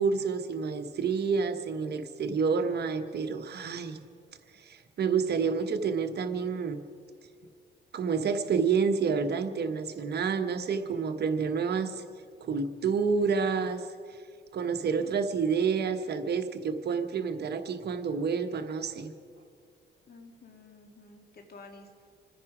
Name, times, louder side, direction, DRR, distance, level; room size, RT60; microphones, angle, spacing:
voice 1, 0.0-4.0 4.5-6.8 7.9-12.0 12.4-13.8 14.5-19.1, right 5 dB, 55° right, 7 dB, 1.2 m, -29 dB
voice 2, 20.1-22.1, left 3 dB, 50° left, 4 dB, 2.4 m, -51 dB
27.0 x 9.9 x 5.0 m, 2.2 s
cardioid pair, 90°, 20 cm